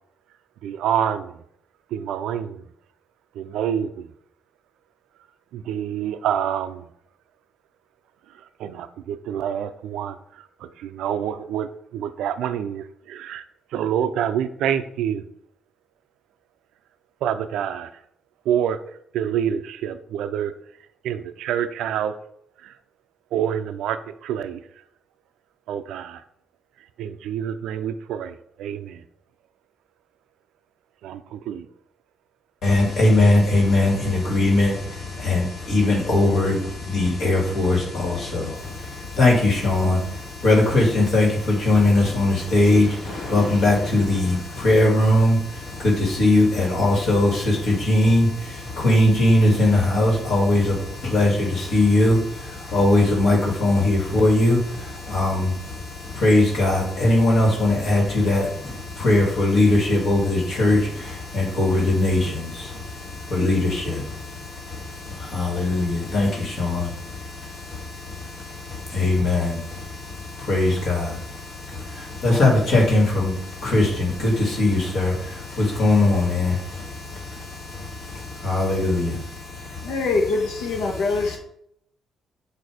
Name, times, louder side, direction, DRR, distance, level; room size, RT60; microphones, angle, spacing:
voice 1, 0.6-1.3 1.9-2.6 3.4-3.9 5.5-6.8 8.6-10.2 10.8-11.7 11.9-13.4 13.7-15.2 17.2-17.9 18.5-18.8 19.1-20.5 21.0-22.1 22.6-22.7 23.3-24.6 25.7-26.2 27.0-29.0 31.0-31.7, right 9 dB, 85° right, 11 dB, 0.4 m, -27 dB
voice 2, 32.6-80.0, left 2 dB, 70° left, -2 dB, 2.1 m, -21 dB
voice 3, 79.8-81.4, left 3 dB, 85° left, 1 dB, 1.1 m, -23 dB
7.7 x 2.7 x 4.9 m, 0.70 s
cardioid pair, 90°, 0 cm